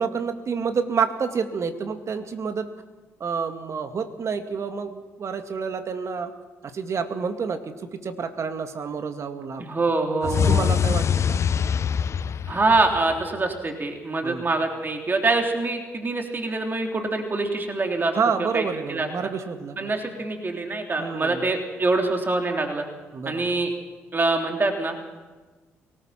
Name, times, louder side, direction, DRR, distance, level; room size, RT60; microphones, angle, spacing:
voice 1, 0.0-2.7 3.2-6.3 6.6-7.6 7.9-9.6 10.5-11.4 14.2-14.5 18.1-19.9 21.0-21.5 23.1-23.5, right 5 dB, 50° right, 7 dB, 2.1 m, -28 dB
voice 2, 9.6-10.7 12.5-19.1 19.8-22.8 23.2-23.7 24.1-24.9, right 3 dB, 30° right, 3 dB, 3.5 m, -25 dB
sound 1, 10.2-13.4, left 7 dB, 50° left, 0.7 m, -23 dB
23.5 x 18.5 x 5.9 m, 1.3 s
hypercardioid pair, 50°, 6 cm